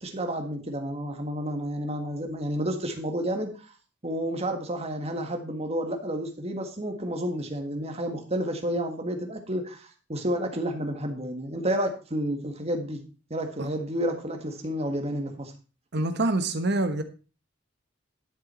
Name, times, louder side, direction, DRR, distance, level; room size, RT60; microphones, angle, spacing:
voice 1, 0.0-3.7 4.0-13.0 13.3-15.5, equal, 30° right, 5 dB, 1.7 m, -30 dB
voice 2, 15.9-17.0, right 2 dB, 55° right, 8 dB, 1.3 m, -26 dB
11.0 x 6.9 x 4.4 m, 0.35 s
head